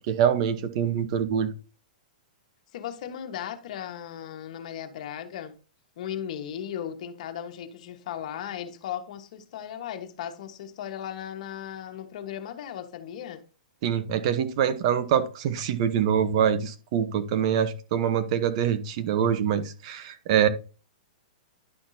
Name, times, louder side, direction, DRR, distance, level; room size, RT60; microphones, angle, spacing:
voice 1, 0.1-1.5 13.8-20.5, right 8 dB, 45° right, 1.0 m, -24 dB
voice 2, 2.7-5.6 6.0-13.4, left 10 dB, 55° left, 1.4 m, -36 dB
11.0 x 5.9 x 2.8 m
hypercardioid pair, 155°, 4 cm